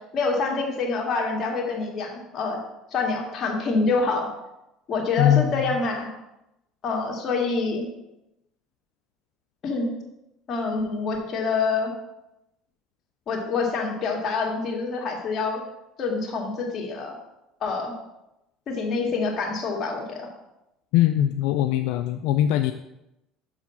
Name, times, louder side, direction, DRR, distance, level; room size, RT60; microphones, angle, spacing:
voice 1, 0.1-2.6 2.9-4.3 4.9-6.1 6.8-7.9 9.6-9.9 10.5-11.9 13.3-15.6 16.0-17.1 17.6-17.9 18.7-20.2, left 4 dB, 45° left, 0 dB, 2.0 m, -26 dB
voice 2, 5.2-5.5 20.9-22.7, left 11 dB, 75° left, 8 dB, 0.3 m, -21 dB
6.9 x 4.8 x 5.5 m, 0.90 s
supercardioid pair, 105°, 0 cm